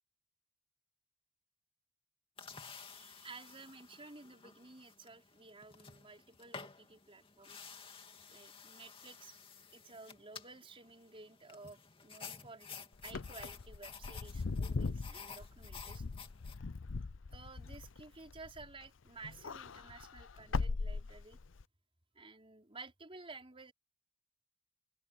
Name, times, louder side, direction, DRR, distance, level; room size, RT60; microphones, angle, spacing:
sound 1, 2.4-16.6, left 5 dB, 30° left, 2.6 m, -53 dB
voice 1, 2.9-7.9 8.3-9.3 9.7-16.1 17.3-21.4 22.1-23.7, right 3 dB, 30° right, 4.9 m, -54 dB
Wind / Car, 13.0-18.9 19.2-21.6, left 3 dB, 75° left, 0.6 m, -40 dB
head